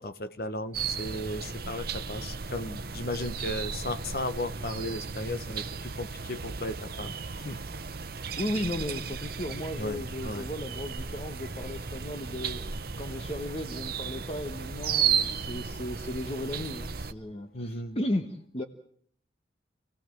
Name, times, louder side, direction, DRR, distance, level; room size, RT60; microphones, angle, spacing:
voice 1, 0.0-7.6 9.8-10.5 17.5-18.0, left 1 dB, 55° left, 10 dB, 1.2 m, -35 dB
sound 1, 0.7-17.1, right 6 dB, 55° right, 0.9 m, -34 dB
voice 2, 8.4-18.3 18.5-18.6, left 1 dB, 35° left, 6 dB, 1.2 m, -35 dB
28.0 x 17.0 x 7.6 m, 0.63 s
head